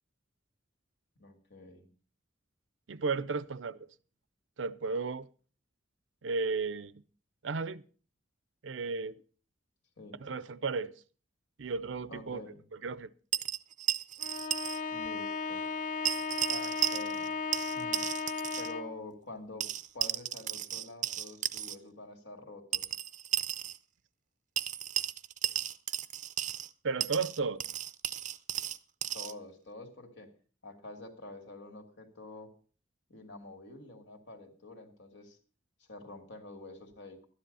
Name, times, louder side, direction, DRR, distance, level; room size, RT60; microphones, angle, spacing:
voice 1, 1.2-1.9 3.1-3.2 10.0-10.2 12.1-12.7 14.9-15.7 16.5-17.3 17.7-18.1 18.6-23.0 29.1-30.3 30.6-32.5 33.1-35.4 35.9-37.3, left 2 dB, 70° left, 2.5 m, -47 dB
voice 2, 2.9-3.9 4.6-5.3 6.2-7.0 7.4-7.8 8.6-9.2 10.2-10.9 11.6-12.4 12.7-13.1 26.8-27.6, right 4 dB, 80° right, 0.6 m, -34 dB
sound 1, 13.3-14.8 15.0-15.1 16.0-17.3 17.5-18.7 19.6-21.7 22.7-23.8 24.6-26.7 27.0-29.3, right 11 dB, 40° right, 0.6 m, -34 dB
Bowed string instrument, 14.2-19.0, left 4 dB, 45° left, 0.7 m, -35 dB
12.5 x 10.0 x 5.5 m
head